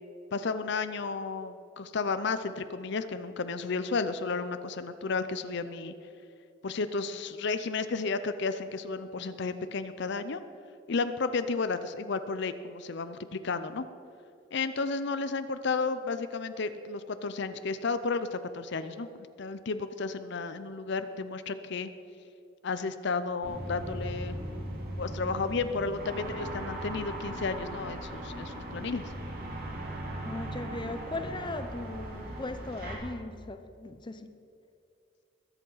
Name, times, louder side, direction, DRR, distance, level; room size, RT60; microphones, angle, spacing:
voice 1, 0.3-5.9 6.6-10.4 10.9-13.9 14.5-21.9 22.6-24.4 25.0-29.1, left 4 dB, 60° left, 11 dB, 0.6 m, -32 dB
sound 1, 23.4-33.0, right 1 dB, 50° right, 2.8 m, -38 dB
voice 2, 30.2-34.3, left 2 dB, 25° left, 9 dB, 0.7 m, -38 dB
21.5 x 8.1 x 5.6 m, 2.6 s
head